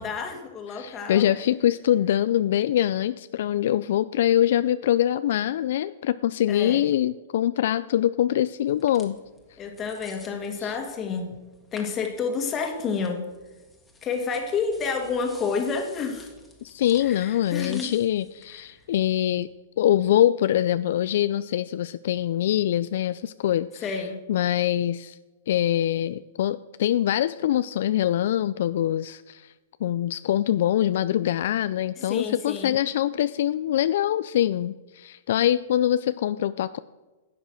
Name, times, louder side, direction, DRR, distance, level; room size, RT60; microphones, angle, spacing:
voice 1, 0.0-1.3 6.5-6.9 9.6-11.4 11.7-13.3 14.0-16.3 17.0-17.9 18.5-18.7 23.8-24.2 32.0-32.8, left 5 dB, 25° left, 5 dB, 1.8 m, -30 dB
voice 2, 0.7-9.2 10.6-10.7 16.6-19.5 19.8-23.9 24.3-25.2 25.5-29.5 29.8-36.8, left 11 dB, 65° left, 14 dB, 0.3 m, -24 dB
sound 1, 8.7-19.4, left 3 dB, 10° left, 1.6 m, -51 dB
11.0 x 8.0 x 6.1 m, 1.2 s
hypercardioid pair, 140°, 0 cm